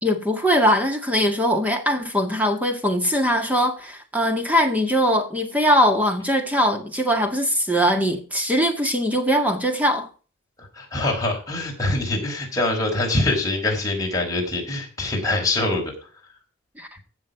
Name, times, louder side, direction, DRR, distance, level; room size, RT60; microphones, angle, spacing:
voice 1, 0.0-10.1 16.8-16.9, equal, 5° right, 1.8 m, -21 dB
voice 2, 10.6-15.8, left 2 dB, 15° left, 4.4 m, -24 dB
15.5 x 6.5 x 4.9 m
head